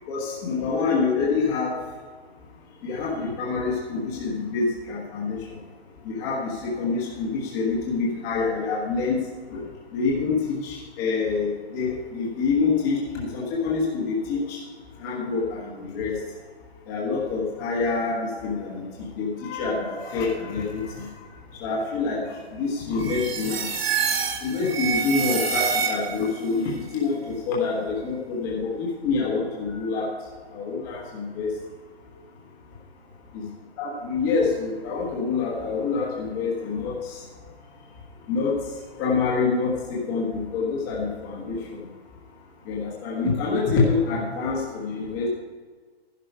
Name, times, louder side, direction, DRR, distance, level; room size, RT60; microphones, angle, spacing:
voice 1, 0.1-1.7 2.8-5.4 6.0-9.2 9.5-9.6 9.9-14.6 15.0-16.1 16.9-18.8 19.2-21.1 21.6-22.2 22.5-23.6 24.4-30.1 30.5-31.5 33.3-33.5 33.8-37.2 38.3-38.5 39.0-41.8 42.7-45.3, left 4 dB, 15° left, -4 dB, 1.4 m, -26 dB
sound 1, 23.0-26.4, right 6 dB, 70° right, 1.8 m, -27 dB
12.0 x 11.0 x 4.6 m, 1.5 s
hypercardioid pair, 175°, 31 cm